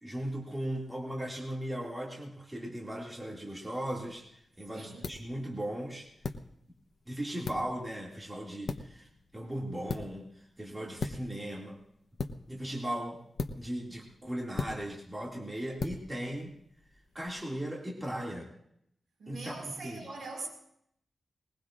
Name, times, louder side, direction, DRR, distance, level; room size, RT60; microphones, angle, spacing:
voice 1, 0.0-6.1 7.1-9.1 9.3-11.8 12.5-13.2 13.5-16.5 17.1-18.5 19.3-20.0, right 1 dB, 15° right, 2.3 m, -37 dB
sound 1, 3.8-17.3, left 4 dB, 60° left, 0.9 m, -42 dB
voice 2, 4.7-5.1 19.2-20.5, right 3 dB, 85° right, 5.0 m, -42 dB
21.0 x 20.0 x 2.5 m
wide cardioid pair, 150°, 0 cm